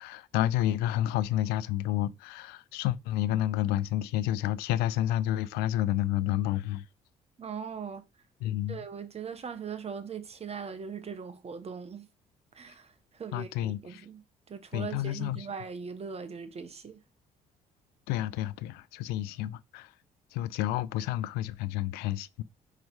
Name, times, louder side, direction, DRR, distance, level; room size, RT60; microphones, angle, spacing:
voice 1, 0.0-6.8 8.4-8.9 13.3-14.1 14.7-15.5 18.1-19.9 20.3-22.4, left 13 dB, 90° left, 0.5 m, -30 dB
voice 2, 7.4-8.0 8.7-12.1 12.5-14.2 14.5-17.0, right 6 dB, 40° right, 1.4 m, -40 dB
5.3 x 4.7 x 4.8 m
supercardioid pair, 75°, 16 cm